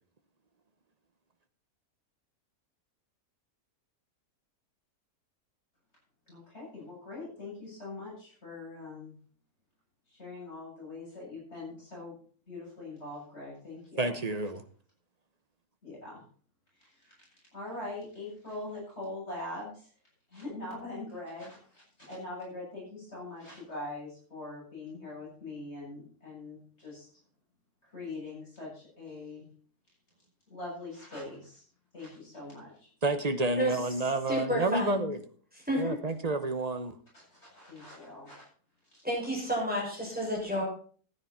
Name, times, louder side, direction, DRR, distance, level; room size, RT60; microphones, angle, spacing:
voice 1, 6.3-9.1 10.1-12.2 12.5-14.2 15.8-16.2 16.8-17.3 17.5-19.9 20.3-27.1 27.9-29.5 30.5-31.6 31.9-32.9 37.1-38.5 38.9-39.0, left 2 dB, 45° left, 8.3 m, -42 dB
voice 2, 14.0-14.6 33.0-35.2 35.8-37.0, right 2 dB, 35° right, 0.8 m, -29 dB
voice 3, 34.3-35.1 35.5-36.0 39.0-40.6, equal, 5° right, 6.1 m, -31 dB
14.5 x 9.8 x 4.3 m
omnidirectional pair, 1.6 m